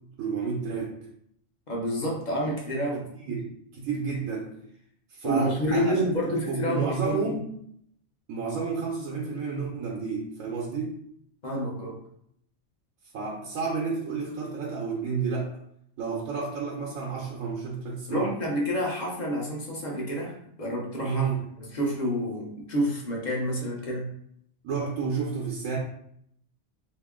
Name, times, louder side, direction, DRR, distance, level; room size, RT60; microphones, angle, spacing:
voice 1, 0.2-1.0 3.3-3.5 3.7-4.5 5.1-6.0 6.4-7.4 8.3-10.9 13.1-15.5 16.0-18.3 21.0-21.4 24.6-25.8, right 5 dB, 85° right, -2 dB, 1.1 m, -30 dB
voice 2, 1.7-3.1 5.2-7.4 11.4-12.0 18.1-21.2 21.6-24.1, equal, 40° left, -1 dB, 0.8 m, -29 dB
2.8 x 2.7 x 3.6 m, 0.70 s
omnidirectional pair, 1.4 m